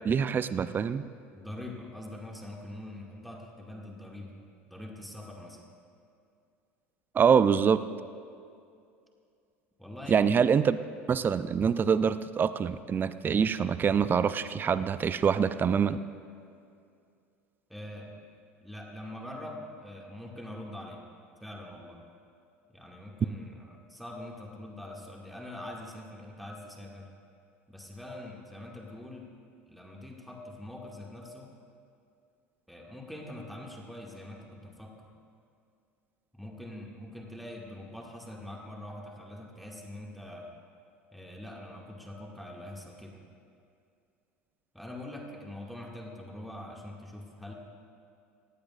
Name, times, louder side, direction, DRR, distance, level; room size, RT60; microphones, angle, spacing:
voice 1, 0.0-1.0 7.1-7.8 10.1-10.8 11.1-16.0, right 7 dB, 30° right, 14 dB, 0.5 m, -25 dB
voice 2, 1.3-4.4 4.7-5.6 9.8-10.3 17.7-18.2 18.6-21.0 21.4-22.0 22.7-27.1 27.7-29.3 29.7-31.5 32.7-35.1 36.3-40.5 41.1-43.2 44.7-47.5, left 1 dB, ahead, -1 dB, 2.0 m, -43 dB
19.0 x 15.0 x 2.5 m, 2.4 s
hypercardioid pair, 75°, 7 cm